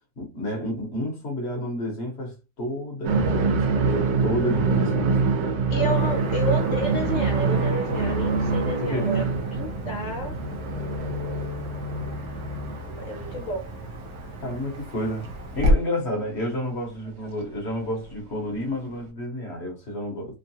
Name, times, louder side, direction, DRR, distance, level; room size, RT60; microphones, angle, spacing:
voice 1, 0.2-5.9 8.8-9.3 14.4-15.3 15.5-20.3, equal, 45° left, 1.1 m, -30 dB
sound 1, 3.0-14.0 14.3-14.4 15.7-15.8 17.2-17.3 18.9-19.0, right 4 dB, 75° right, 1.4 m, -25 dB
voice 2, 5.7-9.2 9.5-10.4 12.8-13.7, equal, 70° left, 0.7 m, -30 dB
Car passing by / Traffic noise roadway noise, 5.9-15.7, equal, 60° right, 1.3 m, -32 dB
3.6 x 2.2 x 2.7 m
omnidirectional pair, 2.0 m